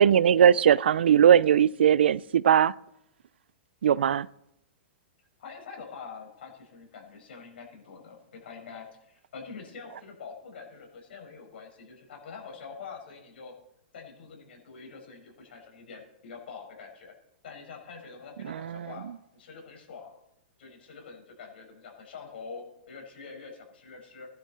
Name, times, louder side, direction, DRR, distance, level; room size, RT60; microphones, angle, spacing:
voice 1, 0.0-2.7 3.8-4.3 18.4-18.9, right 9 dB, 85° right, 0.4 m, -20 dB
voice 2, 5.4-13.5 13.9-17.1 17.4-19.1 19.3-20.1 20.6-24.3, left 5 dB, 80° left, 5.2 m, -45 dB
16.5 x 11.5 x 4.2 m
hypercardioid pair, 145°, 6 cm